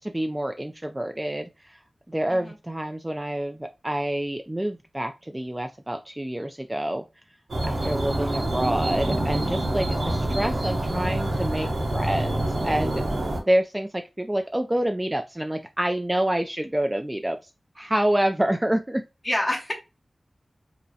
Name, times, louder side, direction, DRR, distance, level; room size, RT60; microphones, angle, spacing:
voice 1, 0.0-1.8 2.1-7.0 7.6-13.0 13.5-17.5 17.8-19.0, right 1 dB, 15° right, 6 dB, 0.3 m, -27 dB
sound 1, 7.5-13.4, right 1 dB, 75° right, 1.0 m, -26 dB
voice 2, 19.2-19.7, left 1 dB, 30° left, -3 dB, 1.0 m, -28 dB
5.3 x 2.1 x 2.7 m, 0.27 s
wide cardioid pair, 60°, 0 cm